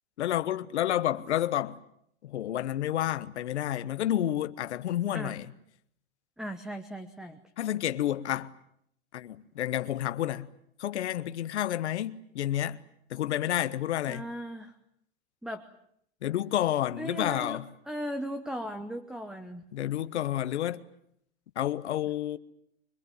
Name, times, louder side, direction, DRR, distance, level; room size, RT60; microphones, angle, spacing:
voice 1, 0.2-1.8 2.2-5.5 7.6-8.5 9.1-10.5 10.8-12.8 13.1-14.2 16.2-17.7 19.7-20.8 21.5-22.4, left 12 dB, 90° left, 1.3 m, -30 dB
voice 2, 6.4-7.4 14.1-14.7 15.4-15.6 17.0-17.6 17.9-19.6, equal, ahead, 1.0 m, -37 dB
25.0 x 22.5 x 9.3 m
supercardioid pair, 150°, 33 cm